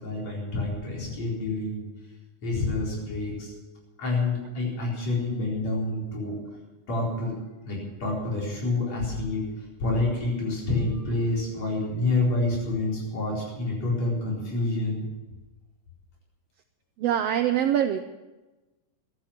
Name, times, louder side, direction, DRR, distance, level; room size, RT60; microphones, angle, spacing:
voice 1, 0.0-1.8 2.4-3.5 4.0-6.4 6.9-7.4 7.7-15.1, left 2 dB, 60° left, -3 dB, 5.4 m, -28 dB
voice 2, 17.0-18.0, right 10 dB, 85° right, 8 dB, 1.4 m, -23 dB
15.0 x 12.5 x 5.9 m, 1.1 s
omnidirectional pair, 3.5 m